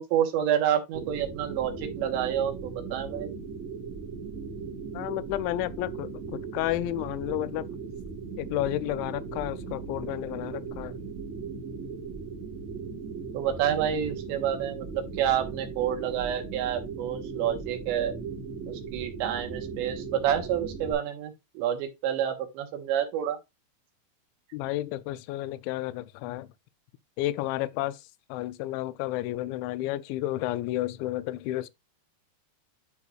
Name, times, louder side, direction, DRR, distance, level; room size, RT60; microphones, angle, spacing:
voice 1, 0.0-3.3 13.3-14.9 15.2-18.1 18.7-23.4, right 10 dB, 80° right, 3.2 m, -28 dB
sound 1, 0.9-20.9, right 5 dB, 60° right, 1.9 m, -38 dB
voice 2, 4.9-7.7 8.4-11.0 24.5-26.5 27.2-28.0 28.3-31.7, left 15 dB, 85° left, 2.8 m, -31 dB
11.0 x 4.6 x 2.3 m
omnidirectional pair, 5.3 m